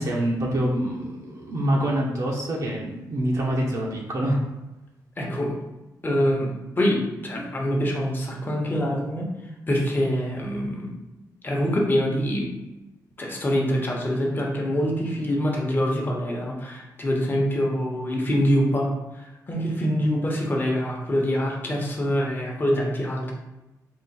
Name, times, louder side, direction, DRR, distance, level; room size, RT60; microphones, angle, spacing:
voice 1, 0.0-4.4, right 1 dB, 55° right, -3 dB, 0.7 m, -25 dB
voice 2, 5.2-5.5 6.0-9.3 9.7-10.9 11.4-12.5 13.2-18.9 19.5-23.3, equal, 30° left, -1 dB, 1.0 m, -25 dB
3.7 x 2.5 x 4.1 m, 1.0 s
cardioid pair, 95°, 7 cm